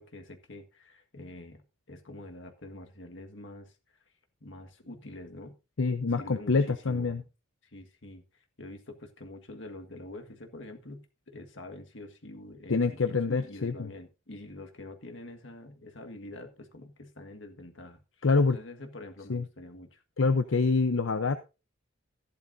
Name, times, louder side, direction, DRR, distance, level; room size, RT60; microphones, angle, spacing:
voice 1, 0.0-3.8 4.4-5.6 6.1-7.3 7.6-20.0, left 1 dB, 70° left, 1.6 m, -46 dB
voice 2, 5.8-7.2 12.7-13.9 18.2-18.6 19.3-19.4 20.2-21.4, left 4 dB, 85° left, 0.7 m, -26 dB
14.0 x 11.5 x 2.6 m
head